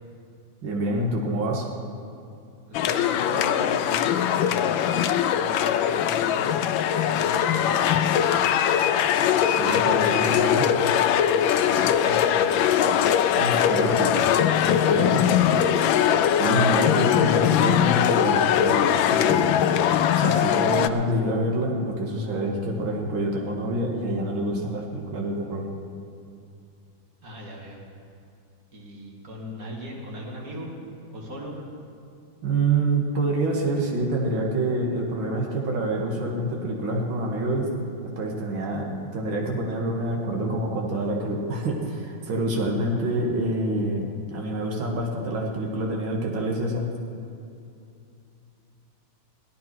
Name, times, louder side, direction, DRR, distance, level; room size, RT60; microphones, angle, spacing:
voice 1, 0.6-1.7 9.4-10.7 13.4-14.2 14.9-15.2 16.4-19.6 20.1-25.7 32.4-37.7 38.2-46.9, right 1 dB, 75° right, 0 dB, 2.3 m, -27 dB
sound 1, 2.7-20.9, left 9 dB, 80° left, 1.3 m, -21 dB
voice 2, 2.7-8.3 11.8-12.5 14.6-15.5 27.2-27.8 28.7-30.7 31.1-31.6, equal, 45° right, -2 dB, 2.6 m, -39 dB
17.0 x 13.0 x 4.6 m, 2.6 s
omnidirectional pair, 2.2 m